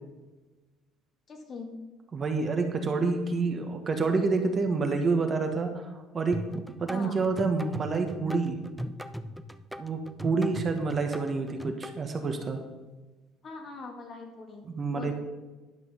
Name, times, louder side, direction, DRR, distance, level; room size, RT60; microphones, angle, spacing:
voice 1, 1.3-1.9 6.9-7.2 13.4-14.7 14.9-15.1, left 3 dB, 40° left, 3 dB, 1.9 m, -42 dB
voice 2, 2.1-6.4 6.8-8.6 9.8-12.6 14.6-15.1, right 4 dB, 30° right, 4 dB, 1.3 m, -28 dB
sound 1, 6.3-11.9, equal, ahead, 0.5 m, -38 dB
11.0 x 5.7 x 5.6 m, 1.2 s
cardioid pair, 110°, 0 cm